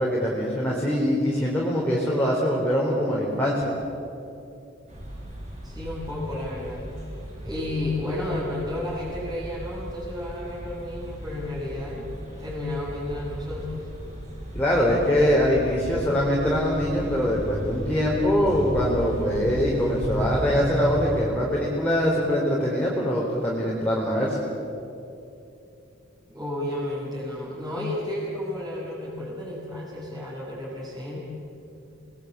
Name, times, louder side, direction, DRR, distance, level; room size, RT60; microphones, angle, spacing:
voice 1, 0.0-3.6 14.5-24.4, equal, 10° left, -5 dB, 4.1 m, -23 dB
sound 1, 4.9-21.2, equal, 40° right, 7.6 m, -35 dB
voice 2, 5.6-6.9 7.4-12.1 12.4-13.9 26.3-31.2, left 1 dB, 20° right, -8 dB, 6.7 m, -32 dB
28.5 x 20.5 x 8.5 m, 2.7 s
head